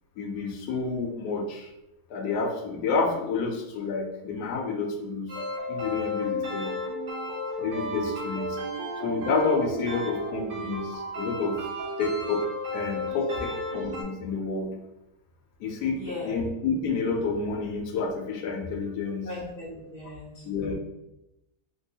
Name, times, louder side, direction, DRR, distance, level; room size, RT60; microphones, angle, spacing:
voice 1, 0.2-1.7 2.1-5.3 5.7-6.8 7.6-8.6 9.0-11.6 12.0-12.5 12.7-14.7 15.6-19.3 20.4-20.7, left 4 dB, 75° left, 3 dB, 1.1 m, -29 dB
sound 1, 5.3-14.0, left 1 dB, 55° right, 0.6 m, -33 dB
voice 2, 15.9-16.3 19.2-20.7, left 2 dB, 45° left, -4 dB, 0.8 m, -38 dB
3.2 x 2.9 x 2.7 m, 0.90 s
omnidirectional pair, 1.8 m